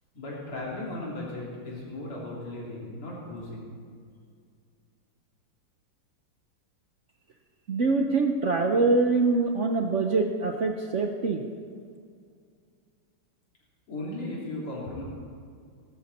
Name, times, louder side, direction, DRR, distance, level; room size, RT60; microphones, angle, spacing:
voice 1, 0.1-3.7 13.9-15.0, left 2 dB, 80° left, -5 dB, 4.5 m, -36 dB
voice 2, 7.7-11.4, right 3 dB, 65° right, 3 dB, 0.7 m, -24 dB
19.5 x 12.5 x 4.3 m, 2.2 s
omnidirectional pair, 2.4 m